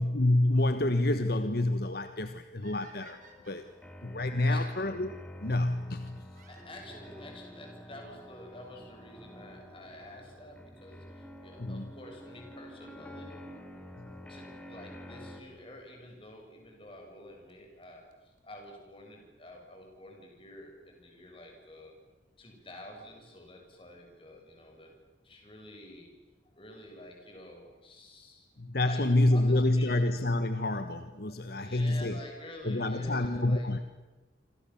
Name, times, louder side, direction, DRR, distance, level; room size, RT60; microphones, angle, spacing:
voice 1, 0.0-3.2 3.5-3.7 4.0-5.1 5.4-6.2 11.6-11.9 14.0-14.1 28.6-32.2 32.6-33.9, left 1 dB, 55° left, 9 dB, 1.3 m, -28 dB
sound 1, 2.6-4.8 6.3-7.4 8.3-8.4 9.1-9.2 9.4-9.5 11.4-11.6 14.4-14.5 15.6-15.7 17.1-17.2 17.5-17.6 17.8-17.9 18.1-18.2 18.4-18.5 18.6-18.7 19.0-19.1, right 4 dB, 45° right, 4.7 m, -56 dB
sound 2, 3.1-15.4, equal, 5° left, 2.8 m, -49 dB
voice 2, 6.5-13.4 14.3-22.0 22.4-24.9 25.2-26.1 26.5-28.5 28.8-30.0 31.3-33.8, left 1 dB, 30° left, 2 dB, 7.1 m, -49 dB
28.0 x 26.5 x 7.2 m, 1.2 s
head